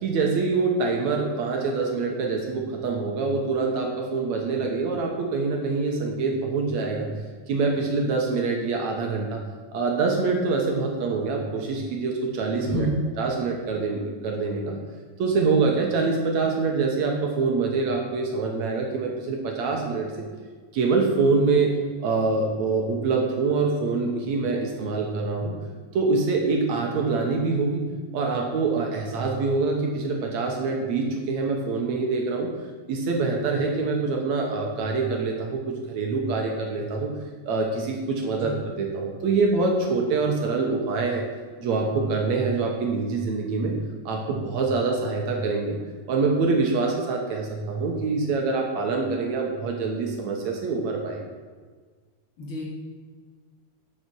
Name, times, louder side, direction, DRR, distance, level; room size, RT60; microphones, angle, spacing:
voice 1, 0.0-7.1 7.5-9.4 9.7-12.9 13.2-14.8 15.2-20.3 20.7-25.6 25.9-27.8 28.1-32.5 32.9-37.1 37.5-41.3 41.6-43.8 44.1-45.8 46.1-51.2, right 4 dB, 65° right, 1 dB, 2.1 m, -25 dB
voice 2, 12.6-13.0 38.4-38.5 52.4-52.6, equal, 50° left, -4 dB, 1.9 m, -28 dB
10.5 x 5.6 x 6.2 m, 1.5 s
omnidirectional pair, 3.8 m